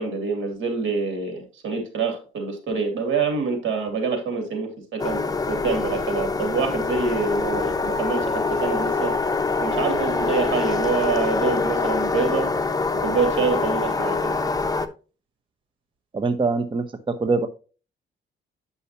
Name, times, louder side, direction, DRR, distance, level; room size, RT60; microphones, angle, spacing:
voice 1, 0.0-5.2 5.5-9.1 9.6-12.5 13.0-14.4, right 5 dB, 80° right, 5 dB, 2.7 m, -26 dB
sound 1, 5.0-14.9, left 4 dB, 20° left, 0.8 m, -24 dB
voice 2, 16.1-17.5, right 4 dB, 25° right, 9 dB, 0.8 m, -23 dB
9.6 x 5.6 x 2.9 m, 0.35 s
cardioid pair, 90°, 20 cm